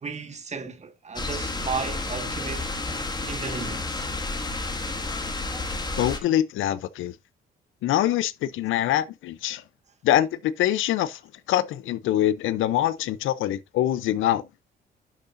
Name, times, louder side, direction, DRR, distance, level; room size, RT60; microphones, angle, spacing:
voice 1, 0.0-2.7 3.3-4.1, right 5 dB, 35° right, 1.8 m, -34 dB
sound 1, 1.2-6.2, left 2 dB, 20° left, 2.1 m, -31 dB
voice 2, 6.0-7.1 7.8-9.6 10.0-11.2 11.5-14.4, left 12 dB, 85° left, 0.7 m, -24 dB
11.5 x 6.7 x 2.6 m
cardioid pair, 90°, 20 cm